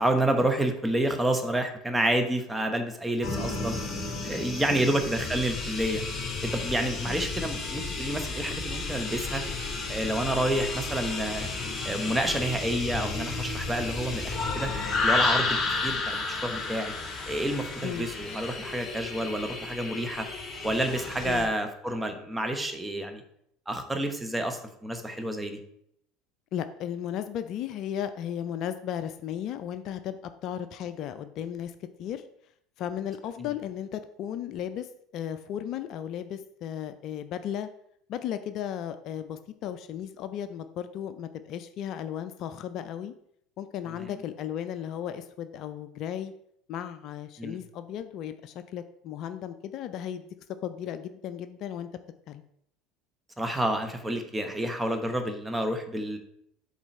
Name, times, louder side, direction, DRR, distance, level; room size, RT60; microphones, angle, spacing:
voice 1, 0.0-3.8 4.2-6.0 6.4-9.4 9.9-11.5 11.8-14.7 15.0-16.9 17.3-20.3 20.6-23.2 23.7-25.6 44.0-44.1 47.4-47.6 53.4-56.2, right 1 dB, 10° right, 5 dB, 1.1 m, -29 dB
sound 1, 3.2-21.4, left 3 dB, 30° left, 2.2 m, -32 dB
voice 2, 4.7-5.0 7.0-7.3 17.8-18.1 21.2-21.5 26.5-32.3 32.8-37.7 38.1-43.1 43.6-46.3 46.7-50.3 50.6-51.9 52.3-52.4, left 10 dB, 50° left, 11 dB, 0.4 m, -35 dB
7.2 x 3.9 x 4.3 m, 0.73 s
figure-of-eight pair, 70°, 0 cm